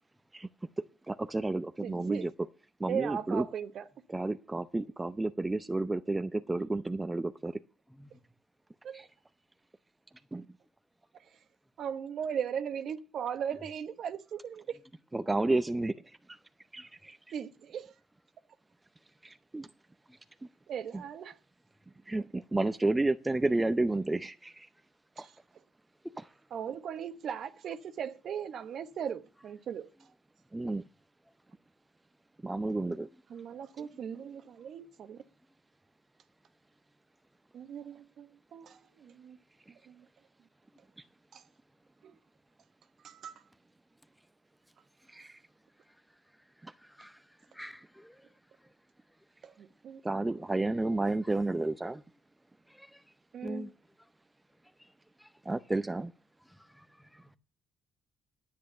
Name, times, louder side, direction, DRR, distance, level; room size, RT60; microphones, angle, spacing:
voice 1, 1.1-2.3 2.8-3.4 4.1-7.6 8.9-9.1 10.3-10.4 15.1-16.2 16.7-17.2 19.2-19.7 22.1-24.7 25.2-25.3 30.5-30.8 32.4-33.1 45.1-45.4 50.0-52.0 55.5-56.1, right 2 dB, 20° right, 0.6 m, -31 dB
voice 2, 1.8-2.3 2.9-3.8 8.8-9.1 11.8-14.8 17.3-17.9 20.7-21.4 25.2-25.3 26.5-29.9 33.3-35.2 37.5-39.4 39.9-40.1 41.3-41.4 42.0-42.1 43.0-43.4 49.4-50.0 53.3-53.6, right 8 dB, 65° right, 1.1 m, -38 dB
voice 3, 7.9-8.2 16.8-16.9 34.2-34.3 45.8-45.9 46.3-48.7 51.2-51.4 51.8-51.9 52.7-53.0 53.4-53.7 54.8-54.9 55.2-55.3 56.4-57.4, equal, 5° left, 0.9 m, -48 dB
10.0 x 8.6 x 6.7 m
supercardioid pair, 70°, 0 cm